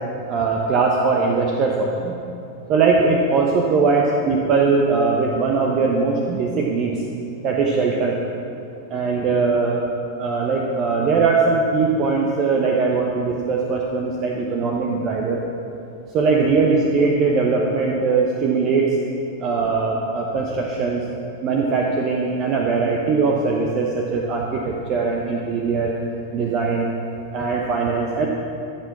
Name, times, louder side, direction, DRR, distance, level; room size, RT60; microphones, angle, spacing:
voice 1, 0.3-2.2 2.7-6.9 7.4-8.2 8.9-9.8 10.2-15.4 16.1-19.0 19.4-21.0 21.4-25.9 26.3-26.9 27.3-28.3, right 4 dB, 35° right, 0 dB, 1.0 m, -20 dB
14.5 x 5.9 x 6.0 m, 2.6 s
figure-of-eight pair, 90°, 0 cm